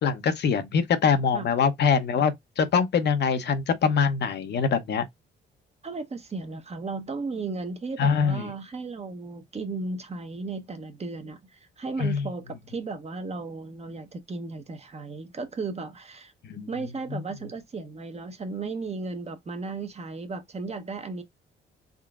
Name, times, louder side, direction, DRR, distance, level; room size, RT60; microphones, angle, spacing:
voice 1, 0.0-5.0 8.0-8.5 12.0-12.3 16.5-16.7 17.1-17.2, left 6 dB, 60° left, 0.7 m, -24 dB
voice 2, 5.8-11.4 11.8-16.3 16.7-21.2, right 3 dB, 30° right, 0.9 m, -35 dB
3.8 x 3.6 x 2.4 m
cardioid pair, 90°, 20 cm